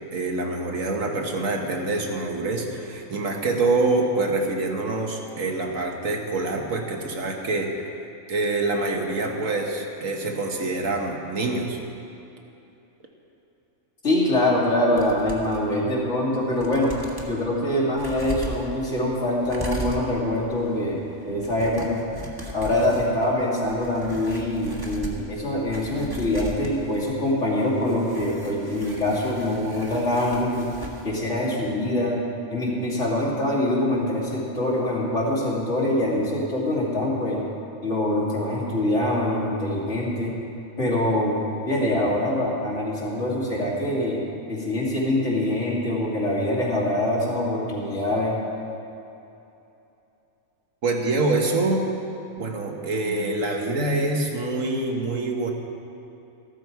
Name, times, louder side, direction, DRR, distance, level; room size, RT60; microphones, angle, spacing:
voice 1, 0.1-7.8 8.3-11.8 50.8-51.9 52.4-55.5, right 2 dB, 75° right, 2 dB, 1.7 m, -25 dB
voice 2, 14.0-16.9 17.2-22.0 22.5-30.7 31.0-32.2 32.5-37.4 37.8-40.3 40.8-41.4 41.7-44.2 44.5-48.4, left 1 dB, 60° left, -5 dB, 3.0 m, -24 dB
sound 1, 15.0-15.6 16.1-16.2 16.5-17.3 17.9-31.1 31.4-31.5, right 1 dB, 15° right, 1.3 m, -38 dB
14.0 x 13.0 x 4.7 m, 2.8 s
omnidirectional pair, 1.4 m